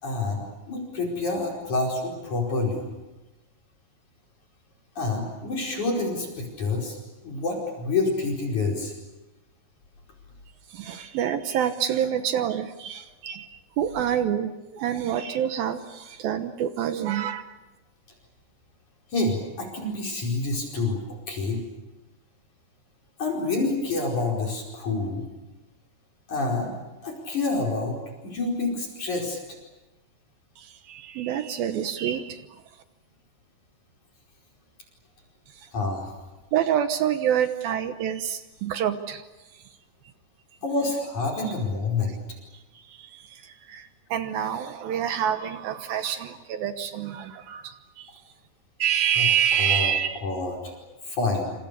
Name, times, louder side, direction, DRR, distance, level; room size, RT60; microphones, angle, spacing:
voice 1, 0.0-2.9 5.0-7.0 7.2-8.9 19.1-21.0 21.3-21.6 23.2-25.2 26.3-26.7 27.0-27.9 28.2-29.4 35.7-36.1 40.6-42.1 49.2-49.3 49.6-49.9 50.2-50.8 51.1-51.5, left 3 dB, 45° left, 0 dB, 6.1 m, -27 dB
voice 2, 10.7-17.5 30.6-32.5 35.5-35.7 36.5-39.2 39.5-39.6 42.5-48.1 48.8-50.2, right 9 dB, 70° right, 9 dB, 2.7 m, -27 dB
29.5 x 27.0 x 6.9 m, 1.1 s
omnidirectional pair, 4.7 m